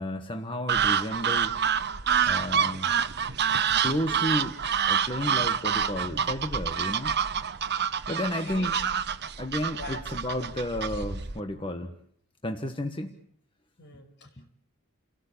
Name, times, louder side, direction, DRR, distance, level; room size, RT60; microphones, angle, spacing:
voice 1, 0.0-1.6 2.2-2.9 3.8-4.6 4.9-7.2 8.1-8.7 9.4-11.9 12.4-13.1 14.4-14.5, left 1 dB, 25° left, 5 dB, 1.4 m, -32 dB
sound 1, 0.7-11.4, right 7 dB, 50° right, 1.1 m, -27 dB
voice 2, 8.4-8.7 9.7-10.0 10.4-10.5 13.8-14.3, left 4 dB, 55° left, 4 dB, 5.9 m, -42 dB
30.0 x 18.0 x 8.7 m, 0.66 s
head